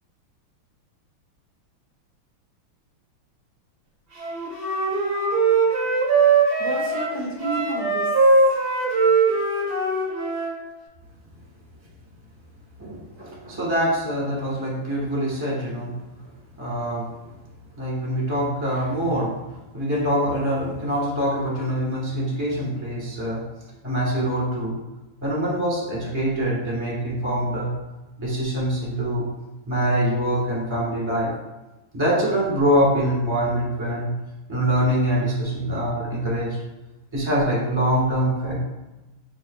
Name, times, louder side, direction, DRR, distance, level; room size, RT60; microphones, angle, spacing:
Wind instrument woodwind instrument, 4.2-10.5, right 3 dB, 55° right, 0.6 m, -21 dB
voice 1, 6.4-8.6 9.0-9.2, right 2 dB, 85° left, -6 dB, 2.6 m, -32 dB
voice 2, 12.8-16.0 16.6-17.2 17.8-23.4 23.8-24.8 25.2-27.7 28.2-29.3 29.7-31.3 31.9-34.2 34.5-36.6 37.1-38.6, equal, 15° right, -5 dB, 1.0 m, -24 dB
6.7 x 3.1 x 2.3 m, 1.0 s
omnidirectional pair, 2.4 m